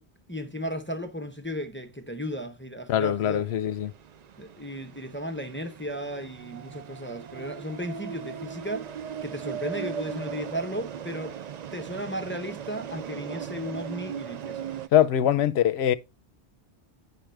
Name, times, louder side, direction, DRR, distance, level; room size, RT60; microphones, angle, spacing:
voice 1, 0.3-3.4 4.4-8.9 9.2-11.3 11.7-14.7, equal, 15° left, 0.6 m, -35 dB
voice 2, 2.9-3.9 14.9-15.9, left 10 dB, 75° left, 0.8 m, -22 dB
sound 1, 3.2-14.9, right 8 dB, 55° right, 0.5 m, -38 dB
9.0 x 5.6 x 3.3 m
omnidirectional pair, 1.1 m